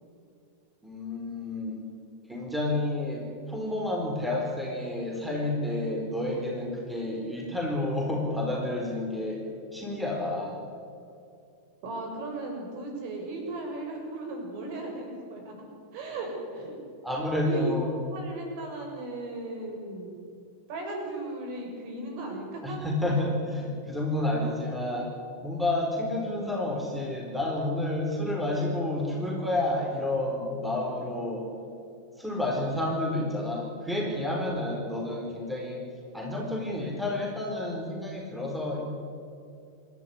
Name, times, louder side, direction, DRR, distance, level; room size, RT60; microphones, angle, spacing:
voice 1, 0.8-1.8 2.3-9.4 9.7-10.6 17.0-17.9 22.6-25.1 25.4-31.5 32.2-35.8 36.1-38.8, left 1 dB, 5° right, -1 dB, 4.5 m, -30 dB
voice 2, 11.8-15.5 15.9-16.8 17.4-17.7 18.1-20.1 20.7-22.8 23.0-23.2, right 2 dB, 45° right, 1 dB, 6.9 m, -36 dB
28.0 x 12.5 x 10.0 m, 2.5 s
figure-of-eight pair, 90°, 0 cm